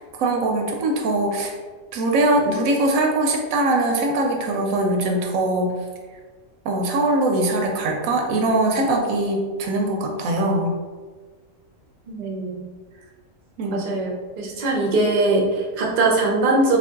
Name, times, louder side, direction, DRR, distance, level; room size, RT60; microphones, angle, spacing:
voice 1, 0.0-1.5 1.9-5.8 6.6-10.8 13.6-13.9, right 2 dB, 85° right, 1 dB, 1.1 m, -22 dB
voice 2, 12.1-12.6 13.7-14.1 14.4-16.8, right 2 dB, 50° right, -1 dB, 0.7 m, -21 dB
3.4 x 2.6 x 3.6 m, 1.4 s
omnidirectional pair, 1.4 m